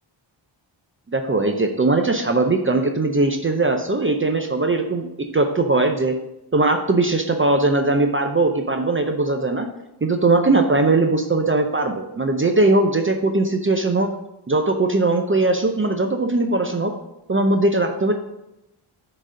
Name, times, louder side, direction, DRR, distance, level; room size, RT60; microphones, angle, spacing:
voice 1, 1.1-6.2 6.5-9.7 10.0-14.1 14.5-16.9 17.3-18.1, right 2 dB, 25° right, 4 dB, 0.6 m, -20 dB
6.4 x 4.1 x 6.2 m, 0.87 s
wide cardioid pair, 115°, 48 cm